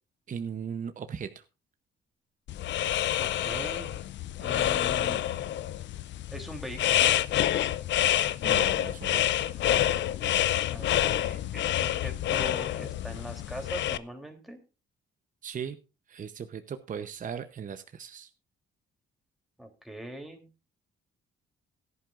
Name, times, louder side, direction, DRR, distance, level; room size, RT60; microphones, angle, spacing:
voice 1, 0.3-1.4 8.4-9.4 15.4-15.8 16.1-18.3, right 7 dB, 40° right, 9 dB, 0.8 m, -38 dB
sound 1, 2.5-14.0, left 12 dB, 65° left, 0.5 m, -27 dB
voice 2, 3.2-4.0 4.3-5.2 6.3-7.2 10.7-14.6 19.6-20.5, right 1 dB, ahead, 2 dB, 3.2 m, -41 dB
16.5 x 11.0 x 2.5 m, 0.29 s
cardioid pair, 90°, 20 cm